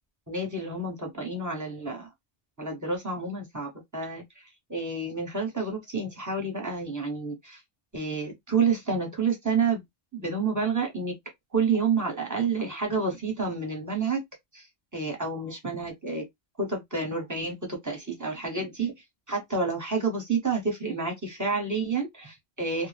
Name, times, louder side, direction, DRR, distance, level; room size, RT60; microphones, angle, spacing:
voice 1, 0.3-2.1 2.6-4.2 4.7-7.6 7.9-9.8 10.1-11.1 11.5-14.2 14.5-14.7 14.9-16.2 16.6-18.9 19.3-22.9, right 4 dB, 20° right, 0.7 m, -29 dB
2.2 x 2.0 x 3.2 m
omnidirectional pair, 1.2 m